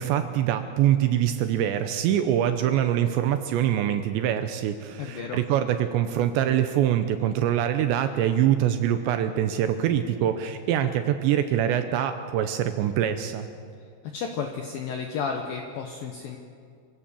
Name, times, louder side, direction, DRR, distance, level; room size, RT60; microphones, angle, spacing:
voice 1, 0.0-13.5, right 10 dB, 80° right, 8 dB, 2.7 m, -24 dB
voice 2, 5.0-5.4 14.1-16.4, left 6 dB, 75° left, 3 dB, 2.1 m, -32 dB
25.5 x 16.0 x 6.9 m, 2.2 s
omnidirectional pair, 5.7 m